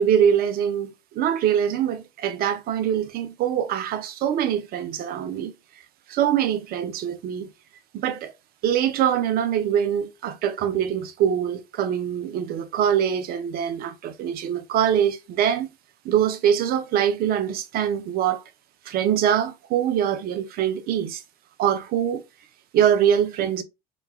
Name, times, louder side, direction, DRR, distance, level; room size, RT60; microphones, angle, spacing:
voice 1, 0.0-5.5 6.1-7.5 7.9-8.3 8.6-15.7 16.0-18.4 18.9-21.2 21.6-22.2 22.7-23.6, right 9 dB, 50° right, 0.5 m, -23 dB
3.0 x 2.3 x 2.3 m
hypercardioid pair, 80°, 19 cm